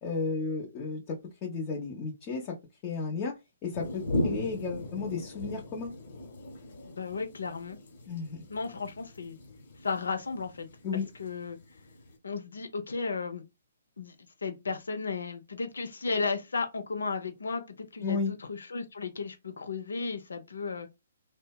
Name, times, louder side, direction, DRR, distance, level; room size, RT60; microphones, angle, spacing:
voice 1, 0.0-2.5 2.8-3.3 3.6-5.9 8.1-8.4 10.8-11.1 18.0-18.3, left 4 dB, 30° left, 0.7 m, -33 dB
sound 1, 3.7-12.1, left 1 dB, 65° left, 1.1 m, -38 dB
voice 2, 6.8-7.8 8.5-9.4 9.8-10.7 10.9-11.6 12.2-13.4 14.0-14.1 14.4-20.9, left 4 dB, 80° left, 0.6 m, -34 dB
2.6 x 2.1 x 2.3 m
hypercardioid pair, 140°, 0 cm